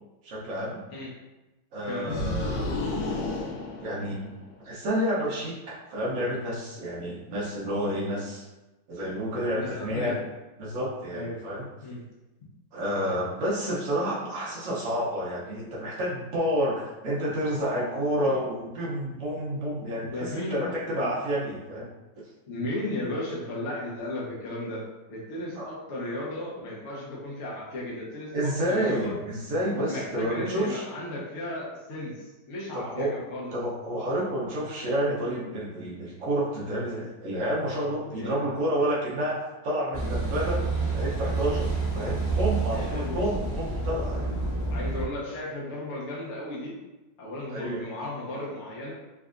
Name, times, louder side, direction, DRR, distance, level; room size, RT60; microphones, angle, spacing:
voice 1, 0.2-0.8 1.7-2.8 3.8-4.2 4.6-8.5 8.9-10.1 10.6-11.6 12.7-21.9 25.6-25.7 28.3-30.8 32.7-33.1 33.5-40.6 40.9-44.5 47.5-47.8, equal, 80° right, -6 dB, 0.7 m, -29 dB
sound 1, 2.1-4.5, left 2 dB, 85° left, 1.5 m, -31 dB
voice 2, 9.5-10.3 11.1-11.4 11.8-12.0 18.2-18.4 19.9-20.7 21.0-21.1 22.5-24.8 25.1-28.3 28.7-29.2 29.8-33.5 38.1-38.5 40.5-40.6 42.7-43.2 44.7-46.7 47.2-48.9, left 1 dB, 55° left, -5 dB, 0.7 m, -35 dB
Car passing by / Idling / Accelerating revving vroom, 39.9-45.0, right 3 dB, 25° left, 1.6 m, -28 dB
3.5 x 3.2 x 2.4 m, 1.1 s
omnidirectional pair, 2.4 m